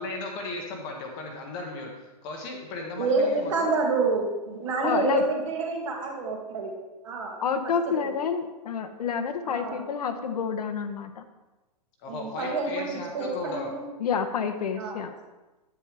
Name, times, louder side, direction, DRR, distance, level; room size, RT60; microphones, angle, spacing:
voice 1, 0.0-3.7 12.0-13.7, left 2 dB, 20° left, 1 dB, 1.0 m, -36 dB
voice 2, 3.0-6.7 7.0-7.4 8.0-8.1 9.4-9.8 12.1-13.8 14.8-15.0, right 3 dB, 50° right, 0 dB, 2.3 m, -28 dB
voice 3, 4.8-5.2 7.4-11.3 14.0-15.1, left 6 dB, 65° left, 7 dB, 1.0 m, -28 dB
10.0 x 9.1 x 3.4 m, 1.1 s
hypercardioid pair, 180°, 21 cm